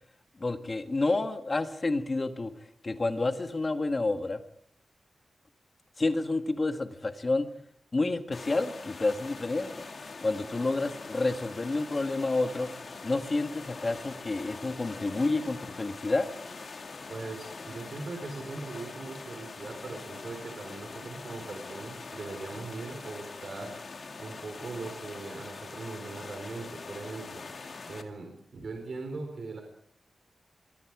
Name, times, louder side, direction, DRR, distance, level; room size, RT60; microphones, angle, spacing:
voice 1, 0.4-2.5 2.8-4.4 6.0-7.5 7.9-9.7 10.2-12.7 13.0-16.3, left 2 dB, 25° left, 7 dB, 1.6 m, -29 dB
sound 1, 8.3-28.0, left 4 dB, 45° left, 2.4 m, -43 dB
voice 2, 17.1-23.7 24.2-27.4 27.9-29.6, right 3 dB, 50° right, 4 dB, 4.2 m, -40 dB
27.0 x 22.5 x 4.9 m, 0.63 s
wide cardioid pair, 180°, 0 cm